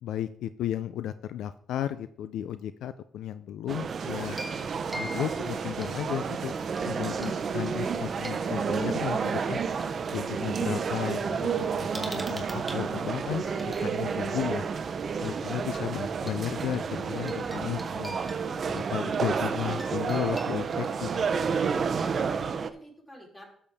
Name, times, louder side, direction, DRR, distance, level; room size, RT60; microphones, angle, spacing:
voice 1, 0.0-4.4 4.9-6.5 6.8-9.6 10.1-14.6 15.2-18.2 18.7-21.9, left 11 dB, 80° left, 13 dB, 0.3 m, -34 dB
sound 1, 3.7-22.7, right 6 dB, 45° right, 0.6 m, -30 dB
sound 2, 3.9-21.5, right 5 dB, 75° right, 1.3 m, -52 dB
sound 3, 4.3-6.2 6.6-7.3 7.7-9.8 10.7-10.8 11.1-13.9 15.2-15.4 15.7-15.8 16.2-21.6, equal, ahead, 1.9 m, -46 dB
voice 2, 21.9-23.5, equal, 20° left, -1 dB, 3.5 m, -52 dB
12.0 x 6.8 x 3.4 m, 0.65 s
cardioid pair, 90°, 0 cm